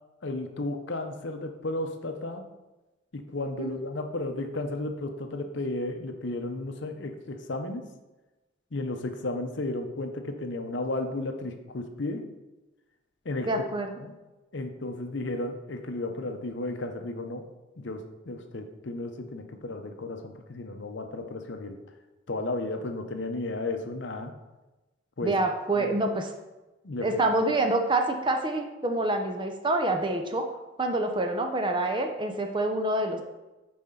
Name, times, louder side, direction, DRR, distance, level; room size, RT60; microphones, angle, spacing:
voice 1, 0.2-2.5 3.1-7.9 8.7-12.3 13.2-13.6 14.0-14.1 14.5-17.5 17.8-21.8 22.3-24.3 25.2-25.4 25.8-25.9 26.8-27.1, left 2 dB, 60° left, 6 dB, 0.7 m, -33 dB
voice 2, 13.5-13.9 25.2-26.3 27.0-30.5 30.8-33.2, right 2 dB, 25° right, 5 dB, 0.6 m, -27 dB
9.7 x 4.2 x 3.8 m, 1.1 s
head